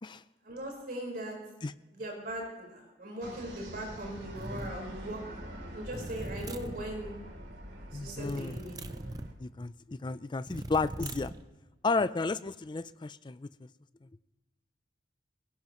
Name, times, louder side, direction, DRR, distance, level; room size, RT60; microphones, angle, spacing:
voice 1, 0.4-1.3 1.9-5.2 5.7-7.1 7.9-8.8, right 1 dB, 55° right, 0 dB, 4.5 m, -39 dB
sound 1, 3.2-9.3, equal, 85° right, 3.1 m, -45 dB
sound 2, 4.4-4.8 5.9-6.8 8.2-9.3 10.5-11.4, right 2 dB, 20° right, 0.6 m, -40 dB
voice 2, 7.9-8.6 9.4-11.3 11.8-13.5 14.0-14.1, left 3 dB, 25° left, 15 dB, 0.4 m, -32 dB
21.5 x 17.5 x 3.0 m, 1.1 s
head